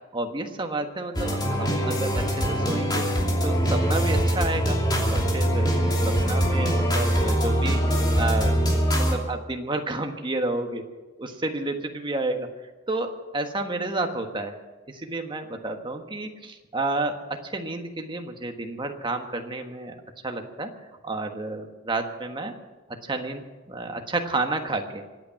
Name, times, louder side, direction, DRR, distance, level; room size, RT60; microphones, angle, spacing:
voice 1, 0.1-3.0 3.4-4.8 5.1-5.7 6.0-8.6 9.0-10.8 11.2-12.5 12.9-14.5 14.9-17.1 17.4-19.9 20.2-20.7 21.0-22.5 23.0-25.0, right 2 dB, 25° right, 4 dB, 1.4 m, -30 dB
sound 1, 1.2-9.2, equal, 20° left, 2.7 m, -23 dB
25.0 x 9.0 x 5.9 m, 1.2 s
head